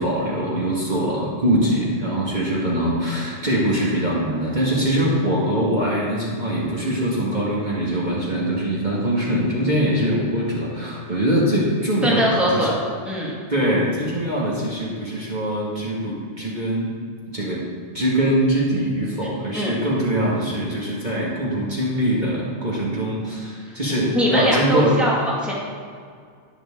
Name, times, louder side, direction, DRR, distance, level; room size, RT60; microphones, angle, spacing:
voice 1, 0.0-12.7 13.2-16.9 17.3-17.6 17.9-25.0, right 1 dB, 35° right, -6 dB, 1.8 m, -23 dB
voice 2, 12.0-12.7 13.0-13.4 19.5-19.9 24.2-25.5, equal, ahead, -5 dB, 1.9 m, -21 dB
11.0 x 10.0 x 3.7 m, 2.1 s
omnidirectional pair, 1.3 m